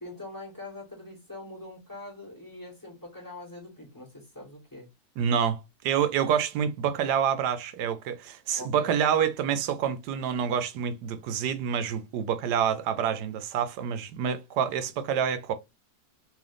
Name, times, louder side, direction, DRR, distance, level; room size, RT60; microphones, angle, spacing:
voice 1, 0.0-4.9 8.5-8.9, left 2 dB, 10° left, 1.8 m, -43 dB
voice 2, 5.2-5.6 5.8-15.5, right 8 dB, 85° right, 1.2 m, -27 dB
3.7 x 3.1 x 3.3 m
omnidirectional pair, 1.8 m